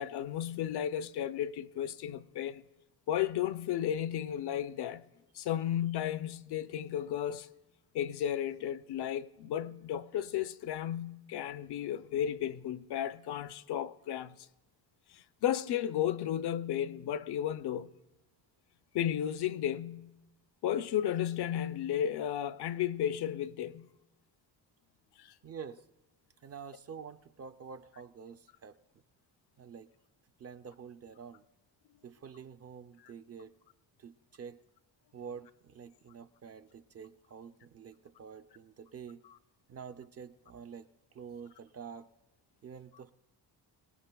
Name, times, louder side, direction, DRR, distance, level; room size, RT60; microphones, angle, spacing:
voice 1, 0.0-2.6 3.1-5.0 5.3-7.5 7.9-14.3 15.1-17.9 18.9-20.1 20.6-23.9 25.2-25.3, left 10 dB, 65° left, 0.6 m, -34 dB
voice 2, 25.4-25.8 26.4-28.8 29.6-29.9 30.4-31.5 32.0-33.5 34.0-34.6 35.1-39.2 39.7-42.1 42.6-43.1, right 6 dB, 35° right, 0.4 m, -48 dB
25.5 x 18.0 x 2.3 m
cardioid pair, 120°, 44 cm